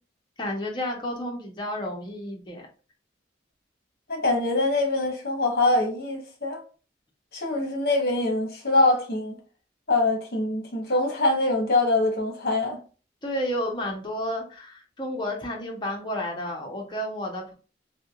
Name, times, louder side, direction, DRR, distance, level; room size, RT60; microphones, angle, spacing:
voice 1, 0.4-2.7 13.2-17.5, left 1 dB, 25° left, 0.7 m, -31 dB
voice 2, 4.1-6.6 7.3-9.4 9.9-12.8, left 2 dB, 55° left, 1.0 m, -24 dB
3.3 x 2.7 x 2.3 m
head